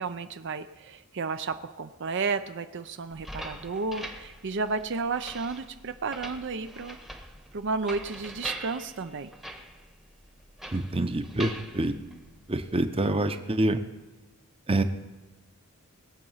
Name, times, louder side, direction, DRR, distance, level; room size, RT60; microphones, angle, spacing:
voice 1, 0.0-7.0 7.5-9.3, right 4 dB, 55° right, 9 dB, 0.6 m, -32 dB
sound 1, 3.1-12.8, right 1 dB, ahead, 1.0 m, -43 dB
voice 2, 10.7-11.9 12.5-13.8 14.7-14.8, right 2 dB, 25° right, 9 dB, 0.8 m, -26 dB
21.0 x 8.0 x 5.6 m, 1.1 s
head